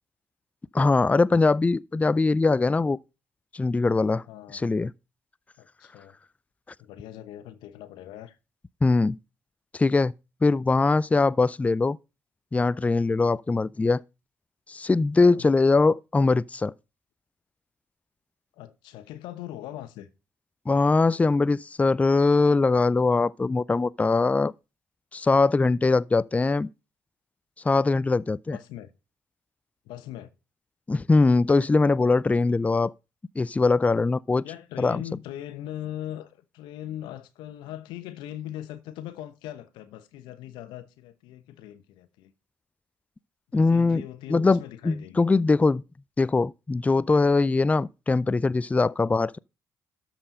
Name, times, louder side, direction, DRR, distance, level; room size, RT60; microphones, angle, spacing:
voice 1, 0.7-3.0 3.5-4.2 4.5-4.9 8.8-9.2 9.7-10.1 10.4-12.0 12.5-14.0 14.7-16.7 20.7-24.5 25.1-26.7 27.6-28.6 30.9-32.9 33.4-34.4 34.8-35.0 43.5-44.0 44.3-45.8 46.2-49.4, left 3 dB, 15° left, 0.4 m, -22 dB
voice 2, 4.3-4.8 5.6-6.2 6.8-8.4 15.2-15.5 18.6-20.1 28.5-28.9 29.9-30.3 34.4-42.3 43.5-45.2, left 12 dB, 70° left, 1.0 m, -40 dB
12.5 x 4.4 x 5.3 m
hypercardioid pair, 50°, 8 cm